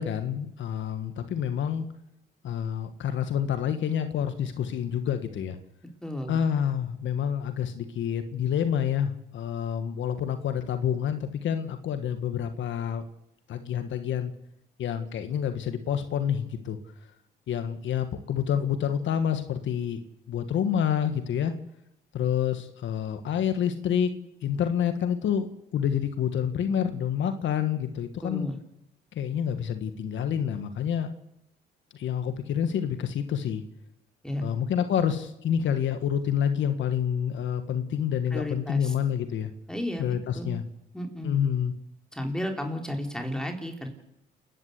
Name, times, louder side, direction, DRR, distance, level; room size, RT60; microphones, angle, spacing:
voice 1, 0.0-1.9 2.4-5.6 6.3-13.0 13.5-14.3 14.8-16.8 17.5-20.0 20.3-21.5 22.1-24.1 24.4-28.5 29.1-31.1 31.9-33.6 34.4-39.5 40.0-40.6 41.2-41.7, left 8 dB, 70° left, 9 dB, 1.6 m, -28 dB
voice 2, 6.0-6.4 28.2-28.6 34.2-34.5 38.3-38.9 39.7-40.6 40.9-41.4 42.1-43.9, left 1 dB, 5° left, 3 dB, 3.8 m, -33 dB
28.5 x 11.0 x 8.3 m, 0.81 s
cardioid pair, 90°, 20 cm